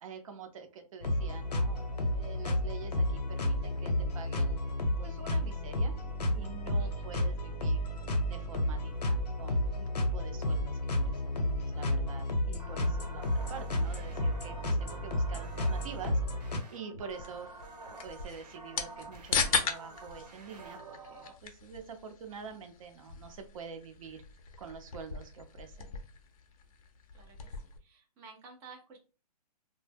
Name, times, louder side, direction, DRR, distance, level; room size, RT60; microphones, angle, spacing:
voice 1, 0.0-4.7 5.0-5.9 6.3-7.8 8.3-17.5 18.0-24.2 24.6-25.9, right 6 dB, 55° right, 6 dB, 0.6 m, -47 dB
sound 1, 1.0-16.6, left 1 dB, 85° left, 0.8 m, -31 dB
sound 2, 12.5-21.3, right 3 dB, 90° right, 0.9 m, -49 dB
sound 3, 17.1-27.8, left 5 dB, 60° left, 0.6 m, -38 dB
voice 2, 27.1-29.0, right 5 dB, 15° right, 0 dB, 0.4 m, -53 dB
2.1 x 2.0 x 3.2 m, 0.33 s
hypercardioid pair, 145°, 21 cm